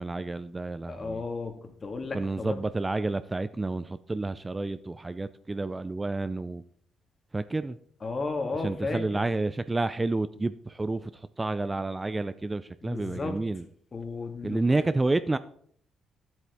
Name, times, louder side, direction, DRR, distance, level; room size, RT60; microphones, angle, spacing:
voice 1, 0.0-1.2 2.1-6.6 7.3-7.8 8.6-13.6 14.4-15.4, right 2 dB, 20° right, 13 dB, 0.4 m, -30 dB
voice 2, 0.9-2.5 8.0-9.2 12.8-13.4 13.9-14.6, left 3 dB, 35° left, 5 dB, 1.7 m, -34 dB
10.0 x 7.8 x 3.5 m, 0.63 s
cardioid pair, 90°, 0 cm